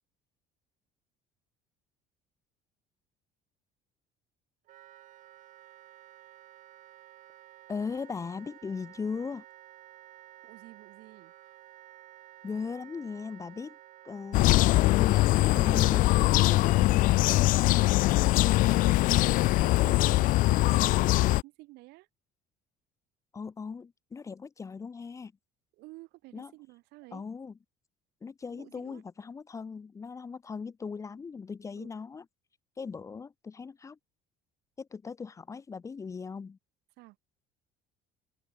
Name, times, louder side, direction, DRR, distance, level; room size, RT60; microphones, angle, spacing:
Wind instrument woodwind instrument, 4.7-16.1, right 13 dB, 45° right, 7.8 m, -53 dB
voice 1, 7.7-9.4 12.4-13.8 14.0-14.6 14.9-17.2 23.3-25.3 26.3-26.5 27.1-27.5 28.2-32.2 32.8-34.0 34.8-36.6, left 5 dB, 15° left, 1.6 m, -38 dB
voice 2, 10.4-11.3 18.1-18.5 18.8-19.2 19.6-22.1 25.8-27.2 28.5-29.0 30.5-30.6 31.8-31.9 37.0-37.2, right 21 dB, 70° right, 7.2 m, -51 dB
sound 1, 14.3-21.4, left 18 dB, 50° left, 0.6 m, -22 dB
cardioid pair, 175°, 18 cm